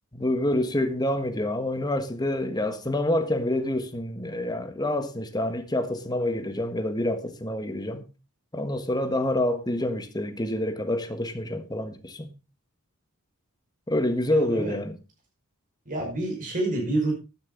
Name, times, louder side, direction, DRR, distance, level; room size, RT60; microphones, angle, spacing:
voice 1, 0.1-8.0 8.5-12.3 13.9-15.0, left 1 dB, 20° left, 1.5 m, -27 dB
voice 2, 14.2-14.7 15.9-17.1, right 2 dB, 40° right, 5.5 m, -28 dB
13.5 x 10.5 x 3.9 m
head